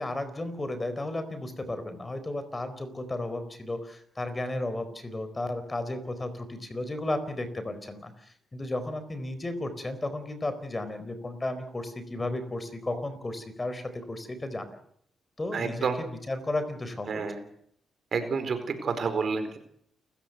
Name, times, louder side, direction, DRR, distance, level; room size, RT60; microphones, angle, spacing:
voice 1, 0.0-14.8 15.4-17.2, left 2 dB, 20° left, 11 dB, 4.3 m, -34 dB
voice 2, 15.5-15.9 17.1-17.3 18.1-19.6, right 5 dB, 55° right, 9 dB, 4.6 m, -29 dB
29.0 x 15.0 x 8.1 m, 0.66 s
cardioid pair, 90°, 0 cm